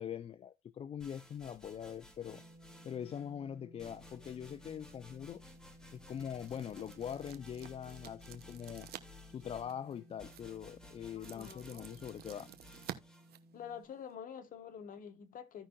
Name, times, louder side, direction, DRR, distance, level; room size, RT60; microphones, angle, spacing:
voice 1, 0.0-2.4 2.8-5.4 5.9-8.9 9.3-12.5, left 8 dB, 35° left, 0.4 m, -43 dB
sound 1, 1.0-3.3 3.8-13.3, left 2 dB, 5° left, 2.0 m, -57 dB
sound 2, 2.3-13.8, right 1 dB, 15° right, 2.1 m, -59 dB
sound 3, 5.2-14.1, right 12 dB, 65° right, 1.0 m, -53 dB
voice 2, 11.1-11.9 13.5-15.7, left 8 dB, 55° left, 1.2 m, -47 dB
16.0 x 5.4 x 2.2 m
cardioid pair, 110°, 17 cm